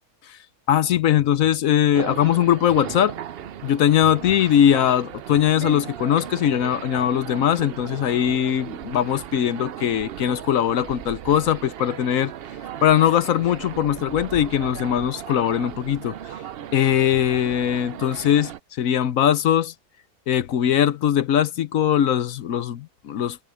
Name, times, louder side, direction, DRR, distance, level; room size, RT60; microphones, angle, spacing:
voice 1, 0.7-3.2 3.6-12.3 12.8-16.2 16.7-18.5 18.8-19.7 20.3-23.4, left 10 dB, 65° left, 1.1 m, -20 dB
sound 1, 1.9-18.6, right 10 dB, 80° right, 0.5 m, -36 dB
omnidirectional pair, 1.7 m